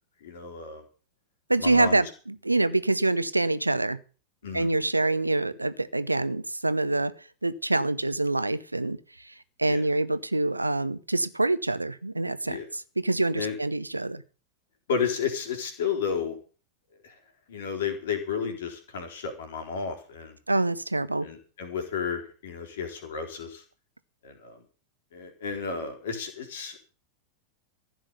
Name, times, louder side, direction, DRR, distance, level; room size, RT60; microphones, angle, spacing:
voice 1, 0.2-0.8 1.6-2.0 4.4-4.7 9.6-9.8 12.4-12.7 13.3-13.6 14.9-16.4 17.0-17.1 17.5-20.4 21.2-23.6 24.2-24.6 25.1-26.8, left 6 dB, 60° left, 5 dB, 4.2 m, -32 dB
voice 2, 1.5-4.0 4.5-7.1 7.4-9.0 9.6-12.6 13.0-14.2 20.5-21.3, right 2 dB, 85° right, 15 dB, 0.9 m, -25 dB
15.0 x 7.6 x 8.2 m, 0.37 s
figure-of-eight pair, 90°, 0 cm